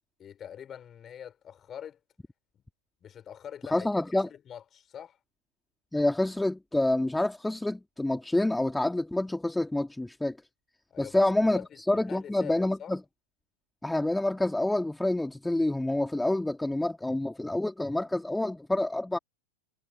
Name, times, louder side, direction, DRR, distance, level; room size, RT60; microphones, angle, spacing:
voice 1, 0.2-2.0 2.5-2.6 3.0-3.9 4.3-5.2 10.9-12.9, left 9 dB, 25° left, 5.4 m, -44 dB
voice 2, 3.7-4.3 5.9-10.4 11.0-11.6 11.9-13.0 13.8-19.2, left 1 dB, 5° left, 2.6 m, -27 dB
figure-of-eight pair, 90°, 0 cm